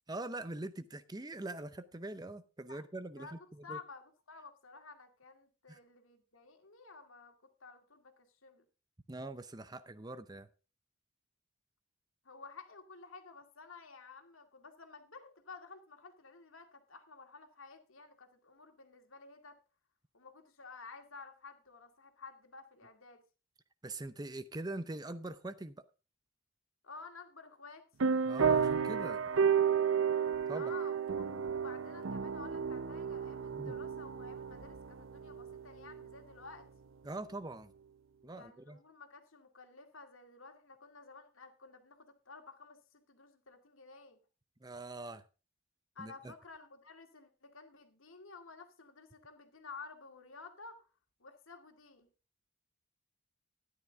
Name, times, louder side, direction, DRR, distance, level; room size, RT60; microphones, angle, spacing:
voice 1, 0.1-3.4 3.7-3.8 5.7-5.8 9.1-10.5 23.8-25.7 28.3-29.2 30.5-30.7 33.5-33.8 37.0-37.7 38.2-38.8 44.6-45.2 46.0-46.3, right 2 dB, 20° right, 0.6 m, -43 dB
voice 2, 3.2-8.7 12.2-19.6 20.1-23.2 26.8-27.9 30.5-36.7 38.3-44.2 46.0-50.8 51.2-52.1, left 4 dB, 80° left, 2.2 m, -53 dB
sound 1, 28.0-36.1, right 6 dB, 75° right, 0.6 m, -32 dB
13.0 x 11.0 x 3.6 m
head